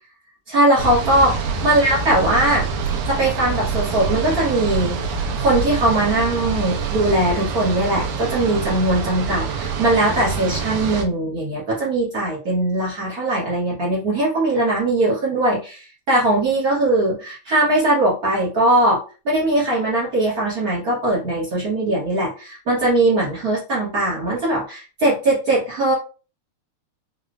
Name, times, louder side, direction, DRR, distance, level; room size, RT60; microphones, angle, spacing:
voice 1, 0.5-2.7 3.1-5.0 5.4-25.9, right 1 dB, 60° right, -6 dB, 0.9 m, -20 dB
sound 1, 0.8-11.0, right 5 dB, 80° right, 1.6 m, -26 dB
4.7 x 2.1 x 2.4 m, 0.34 s
omnidirectional pair, 3.3 m